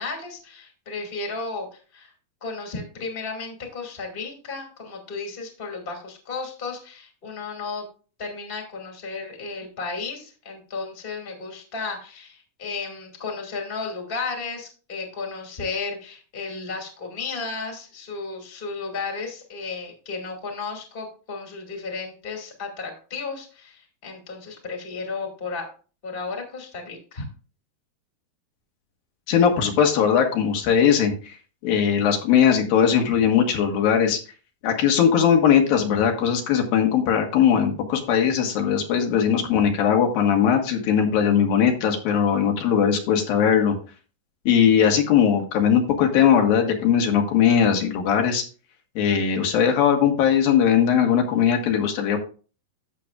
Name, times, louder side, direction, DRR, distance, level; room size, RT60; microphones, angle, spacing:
voice 1, 0.0-2.1 2.4-7.9 8.2-25.7 26.0-27.3, left 4 dB, 20° left, 1 dB, 1.9 m, -34 dB
voice 2, 29.3-31.4 31.6-34.2 34.6-43.7 44.5-48.4 49.0-52.2, left 8 dB, 80° left, 3 dB, 3.2 m, -19 dB
14.0 x 6.9 x 2.4 m, 0.37 s
omnidirectional pair, 4.0 m